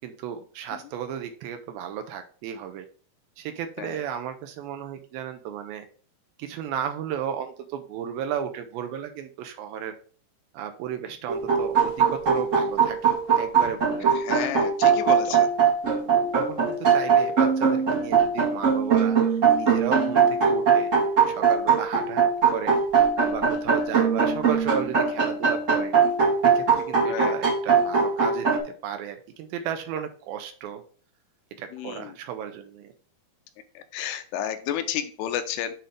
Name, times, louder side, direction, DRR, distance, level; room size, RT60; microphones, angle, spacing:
voice 1, 0.0-2.9 3.4-5.9 6.4-10.0 10.5-13.0 13.4-14.5 15.3-15.4 16.3-20.9 21.3-22.3 22.5-22.8 23.2-25.9 26.4-30.8 31.6-32.9, right 9 dB, 80° right, 7 dB, 2.3 m, -34 dB
sound 1, 11.3-28.6, right 6 dB, 55° right, 0.8 m, -21 dB
voice 2, 14.2-15.4 27.1-27.4 31.7-32.1 33.9-35.8, left 10 dB, 85° left, 9 dB, 2.6 m, -31 dB
7.5 x 2.7 x 5.0 m, 0.43 s
omnidirectional pair, 4.5 m